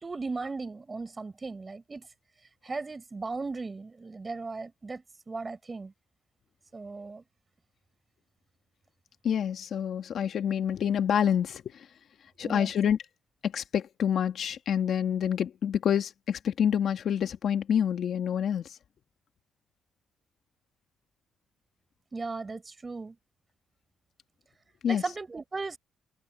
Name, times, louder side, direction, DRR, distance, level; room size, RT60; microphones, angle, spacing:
voice 1, 0.0-2.1 2.6-5.9 6.7-7.2 12.4-12.7 22.1-23.2 24.9-25.8, right 3 dB, 25° right, 4.6 m, -37 dB
voice 2, 9.2-11.9 12.4-13.0 13.4-18.7 24.8-25.0, left 8 dB, 60° left, 1.8 m, -27 dB
cardioid pair, 90°, 0 cm